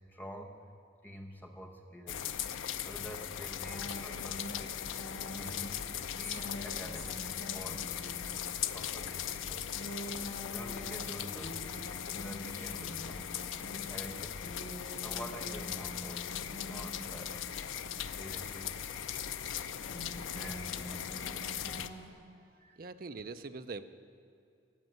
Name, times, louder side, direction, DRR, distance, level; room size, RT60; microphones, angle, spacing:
voice 1, 0.1-0.6 1.0-2.5 2.8-4.5 5.3-10.0 10.5-13.4 13.9-14.5 14.9-16.4 16.7-17.4 18.1-18.9 20.1-21.2 21.6-21.8 22.6-22.8, equal, 10° left, 2 dB, 1.0 m, -48 dB
sound 1, 2.1-21.9, left 9 dB, 85° left, 0.5 m, -39 dB
sound 2, 3.7-17.8 18.5-22.1, equal, 65° left, 2.1 m, -46 dB
voice 2, 22.5-23.8, right 3 dB, 45° right, 9 dB, 0.5 m, -43 dB
15.5 x 5.4 x 9.3 m, 2.5 s
head